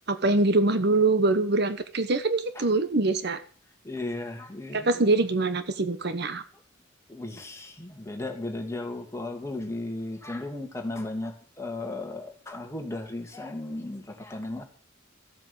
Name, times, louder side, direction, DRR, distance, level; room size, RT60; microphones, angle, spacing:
voice 1, 0.1-3.4 4.7-6.4, right 2 dB, 55° right, 1.1 m, -24 dB
voice 2, 3.8-4.9 7.1-14.6, left 2 dB, 15° left, 2.5 m, -35 dB
14.5 x 8.2 x 7.1 m
head